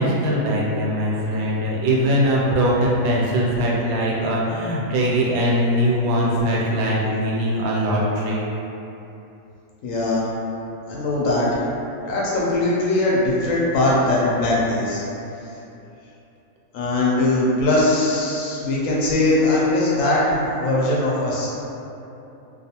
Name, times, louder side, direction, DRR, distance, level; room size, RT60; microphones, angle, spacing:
voice 1, 0.0-8.4, equal, 85° right, -4 dB, 1.0 m, -21 dB
voice 2, 9.8-10.3 10.9-11.6 12.0-15.0 16.7-21.5, left 2 dB, 75° left, -6 dB, 0.9 m, -20 dB
2.4 x 2.3 x 2.8 m, 2.9 s
omnidirectional pair, 1.5 m